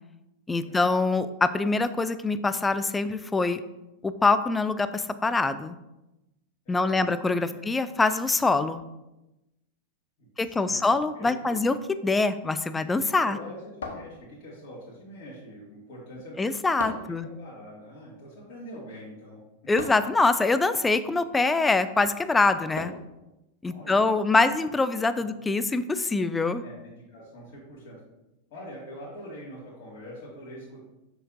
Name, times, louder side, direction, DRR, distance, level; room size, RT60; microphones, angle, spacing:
voice 1, 0.5-3.6 4.0-5.8 6.7-8.8 10.4-11.8 12.0-13.4 16.4-17.3 19.7-22.9 23.6-26.6, left 3 dB, 10° left, 12 dB, 0.4 m, -24 dB
voice 2, 6.6-7.1 7.4-7.6 10.4-11.6 13.2-16.4 16.9-19.4 23.6-24.5 25.1-25.2 26.6-28.0 28.5-30.8, equal, 45° left, -8 dB, 2.1 m, -44 dB
sound 1, 13.8-14.7 16.8-17.2 19.8-20.2 22.8-23.2, left 3 dB, 65° left, 0.8 m, -38 dB
6.5 x 6.3 x 2.6 m, 0.96 s
figure-of-eight pair, 90°, 0 cm